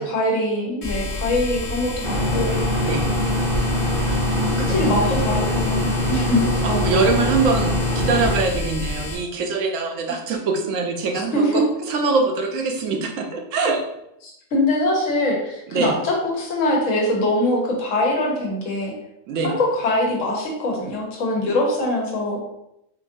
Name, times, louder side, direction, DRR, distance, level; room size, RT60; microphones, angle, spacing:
voice 1, 0.0-2.6 4.4-6.5 11.3-11.6 14.5-18.9 19.4-22.4, left 1 dB, 70° left, -1 dB, 1.2 m, -23 dB
sound 1, 0.8-9.1, left 1 dB, 50° left, 0.8 m, -29 dB
sound 2, 2.0-8.4, left 1 dB, 50° right, 0.4 m, -23 dB
voice 2, 3.9-5.2 6.6-13.8 15.7-16.0 19.3-19.5, right 4 dB, 75° right, 3 dB, 0.9 m, -23 dB
3.9 x 2.6 x 2.5 m, 0.82 s
omnidirectional pair, 1.4 m